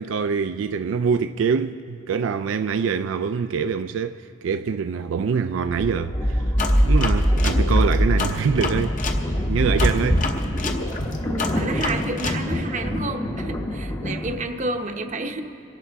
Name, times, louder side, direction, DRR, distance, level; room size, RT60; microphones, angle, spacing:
voice 1, 0.0-6.4 6.8-9.0 9.3-10.3, right 6 dB, 80° right, 0.3 m, -24 dB
sound 1, 5.6-14.4, equal, 20° left, 0.8 m, -23 dB
sound 2, 6.6-9.2 9.8-12.4, left 3 dB, 40° left, 0.9 m, -29 dB
voice 2, 9.9-10.3 11.3-15.4, right 2 dB, 40° right, 0.8 m, -30 dB
27.5 x 11.0 x 3.5 m
head